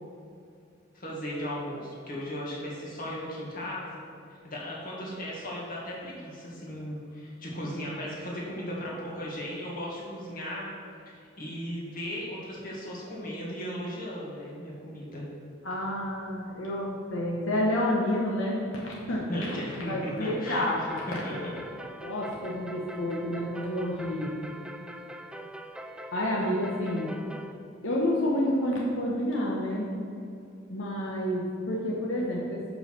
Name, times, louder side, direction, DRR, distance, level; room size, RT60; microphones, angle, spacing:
voice 1, 0.9-3.9 4.3-10.7 11.1-15.2 19.3-20.7 21.2-21.5, equal, 50° left, -5 dB, 1.8 m, -36 dB
voice 2, 15.6-21.0 22.0-24.4 26.1-27.1 27.8-29.9 30.7-32.7, left 1 dB, 80° left, -3 dB, 1.0 m, -29 dB
sound 1, 20.5-27.5, equal, 5° right, 0.3 m, -43 dB
6.5 x 5.5 x 5.9 m, 2.5 s
head